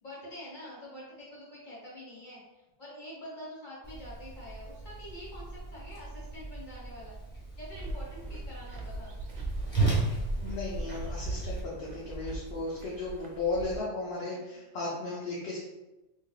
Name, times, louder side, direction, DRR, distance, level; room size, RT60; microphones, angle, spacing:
voice 1, 0.0-7.1 7.6-9.2 14.1-14.6, equal, 45° left, -6 dB, 1.4 m, -46 dB
Whoosh swoosh swish, 3.8-11.6, right 3 dB, 25° left, 1.2 m, -35 dB
sound 1, 7.7-13.8, right 1 dB, 50° right, 0.6 m, -38 dB
voice 2, 10.4-15.6, left 3 dB, 65° left, -6 dB, 0.9 m, -35 dB
3.4 x 3.1 x 2.3 m, 1.0 s
omnidirectional pair, 1.2 m